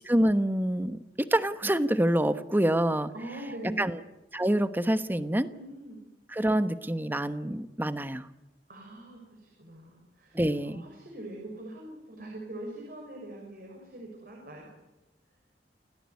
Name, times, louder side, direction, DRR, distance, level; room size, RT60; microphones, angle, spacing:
voice 1, 0.1-3.1 3.8-4.0 4.3-5.5 6.3-8.3 10.3-10.8, right 1 dB, 10° right, 11 dB, 1.1 m, -26 dB
voice 2, 3.1-3.9 5.4-6.0 8.7-14.7, right 1 dB, 55° right, 1 dB, 6.6 m, -42 dB
29.0 x 17.0 x 9.6 m, 0.99 s
head